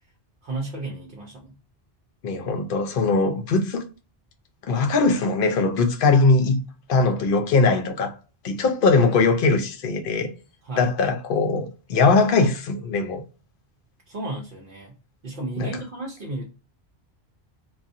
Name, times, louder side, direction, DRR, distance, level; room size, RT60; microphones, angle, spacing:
voice 1, 0.4-1.6 10.6-10.9 14.1-14.9 15.2-16.4, right 2 dB, 55° right, 0.8 m, -33 dB
voice 2, 2.2-3.8 4.6-6.6 6.9-8.1 8.4-10.3 10.8-13.2 15.6-15.7, left 3 dB, 60° left, 0.7 m, -20 dB
2.4 x 2.3 x 2.6 m
omnidirectional pair, 1.1 m